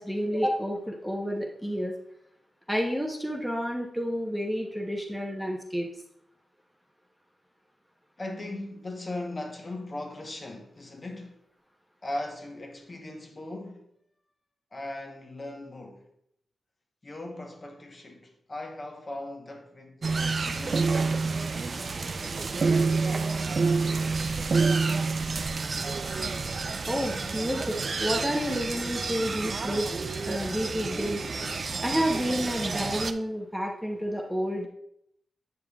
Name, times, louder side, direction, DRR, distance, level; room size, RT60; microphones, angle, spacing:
voice 1, 0.0-1.9 2.7-5.9 26.9-29.9 30.3-31.2 31.8-34.7, equal, ahead, 0.8 m, -30 dB
voice 2, 8.2-11.3 12.0-13.9 14.7-16.1 17.0-20.0 20.4-21.3, left 1 dB, 30° left, 1.0 m, -38 dB
sound 1, 20.0-33.1, right 4 dB, 45° right, 0.4 m, -28 dB
8.4 x 7.0 x 2.3 m
wide cardioid pair, 125°, 0 cm